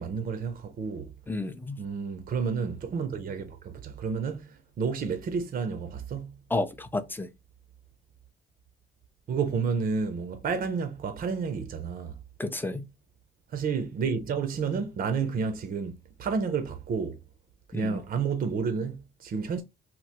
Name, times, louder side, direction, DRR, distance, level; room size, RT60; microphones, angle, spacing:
voice 1, 0.0-1.1 1.8-6.4 9.3-12.2 13.5-17.2 17.7-19.6, right 5 dB, 45° right, 0.5 m, -30 dB
voice 2, 1.3-1.8 6.5-7.3 12.4-12.9 17.7-18.0, left 2 dB, 10° left, 0.4 m, -31 dB
2.9 x 2.0 x 3.2 m
cardioid pair, 90°, 20 cm